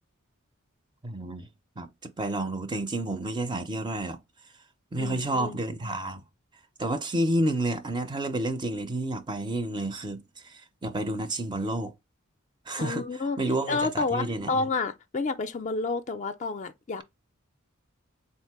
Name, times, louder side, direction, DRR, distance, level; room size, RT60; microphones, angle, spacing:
voice 1, 1.0-1.5 1.8-4.2 4.9-6.2 6.8-11.9 12.7-13.0 13.4-14.6, right 1 dB, 20° right, 0.4 m, -30 dB
voice 2, 5.0-5.6 12.8-13.4 13.7-17.0, left 3 dB, 35° left, 0.4 m, -30 dB
3.6 x 2.5 x 4.6 m
head